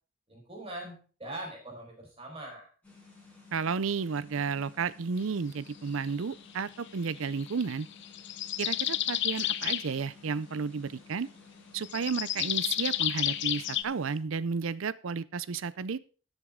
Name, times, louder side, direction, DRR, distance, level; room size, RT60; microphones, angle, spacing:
voice 1, 0.3-2.7, right 1 dB, 25° right, -1 dB, 4.8 m, -42 dB
sound 1, 2.8-14.2, left 3 dB, 5° left, 5.3 m, -55 dB
voice 2, 3.5-7.9 8.6-11.3 11.7-16.0, right 5 dB, 65° right, 18 dB, 0.5 m, -32 dB
sound 2, 7.4-9.9 11.8-13.8, left 12 dB, 55° left, 0.6 m, -31 dB
13.5 x 8.2 x 3.6 m, 0.38 s
head